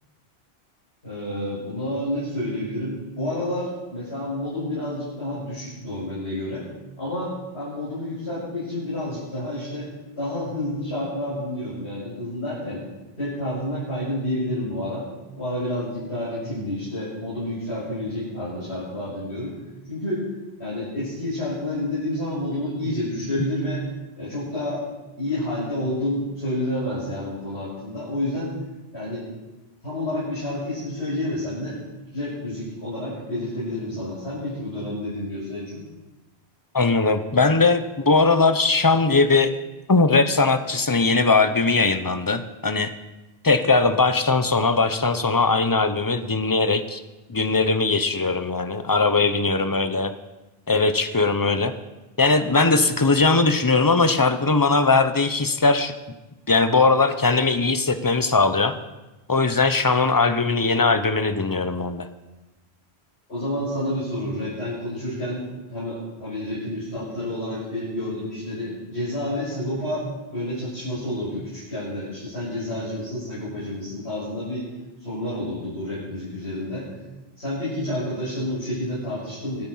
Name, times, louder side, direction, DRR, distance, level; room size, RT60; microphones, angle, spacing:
voice 1, 1.0-6.7 7.0-9.9 10.2-12.8 13.2-15.0 15.4-19.5 19.9-20.3 20.6-23.8 24.2-24.8 25.2-28.5 28.9-29.2 29.8-31.8 32.1-35.8 63.3-70.1 70.3-74.7 75.0-76.9 77.4-79.6, left 1 dB, 90° left, -11 dB, 7.6 m, -29 dB
voice 2, 36.7-39.5 39.9-42.9 43.4-47.0 47.3-50.1 50.7-51.7 52.2-55.9 56.5-58.7 59.3-62.1, left 3 dB, 20° left, 10 dB, 0.8 m, -20 dB
25.5 x 8.9 x 5.6 m, 1.1 s
omnidirectional pair, 1.1 m